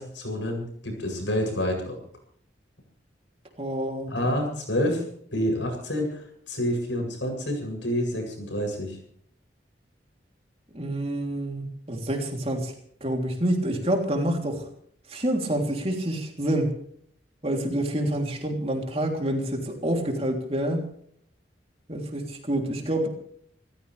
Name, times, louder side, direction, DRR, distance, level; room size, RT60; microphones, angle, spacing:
voice 1, 0.0-1.9 4.1-5.0 5.3-9.0, equal, 85° left, 2 dB, 8.0 m, -28 dB
voice 2, 3.6-4.1 10.7-12.7 13.0-14.6 15.1-16.7 17.4-20.8 21.9-23.1, right 1 dB, 35° right, 2 dB, 3.3 m, -27 dB
28.0 x 14.5 x 3.5 m, 0.65 s
head